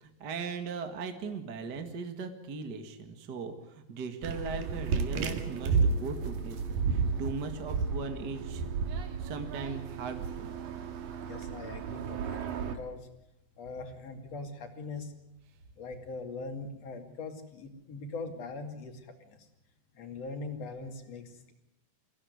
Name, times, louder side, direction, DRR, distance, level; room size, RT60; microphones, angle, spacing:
voice 1, 0.0-8.6 9.2-10.5, right 4 dB, 35° right, 6 dB, 1.9 m, -39 dB
sound 1, 4.2-12.8, right 5 dB, 85° right, 3.6 m, -32 dB
voice 2, 11.2-13.1 13.6-15.1 15.7-19.5 19.9-21.5, left 3 dB, 50° left, 5 dB, 3.4 m, -41 dB
24.0 x 16.0 x 9.6 m, 0.84 s
omnidirectional pair, 3.9 m